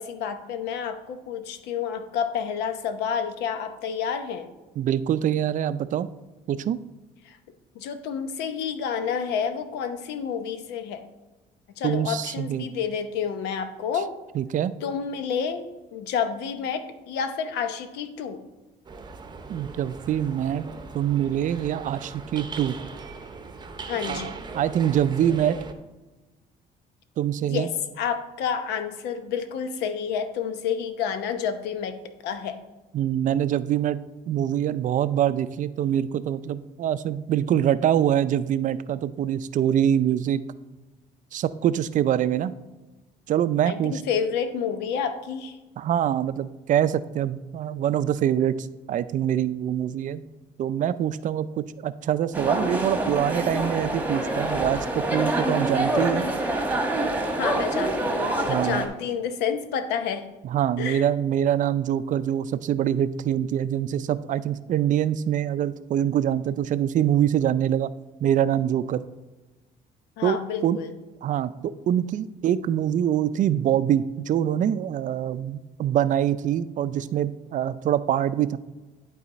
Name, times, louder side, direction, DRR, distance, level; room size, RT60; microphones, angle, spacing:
voice 1, 0.0-4.5 7.2-7.4 7.7-11.1 11.8-14.1 14.8-15.7 15.9-18.4 23.9-24.4 27.4-27.7 28.0-32.0 32.2-32.6 43.7-45.6 57.4-60.3 60.8-61.0 70.2-70.9, left 7 dB, 85° left, 9 dB, 0.9 m, -29 dB
voice 2, 4.8-6.1 6.5-6.8 11.8-12.7 14.3-14.7 19.5-20.7 20.9-22.8 24.1-25.6 27.2-27.7 32.9-34.0 34.3-40.4 41.3-42.5 43.3-44.0 45.8-50.2 50.6-56.3 58.5-58.9 60.4-67.9 68.2-69.0 70.2-70.8 71.2-78.6, right 10 dB, 50° right, 14 dB, 0.4 m, -24 dB
sound 1, 18.8-25.7, right 4 dB, 25° right, 0.8 m, -39 dB
sound 2, 52.3-58.9, right 1 dB, 10° right, 1.2 m, -26 dB
11.0 x 4.1 x 4.1 m, 1.1 s
cardioid pair, 110°, 17 cm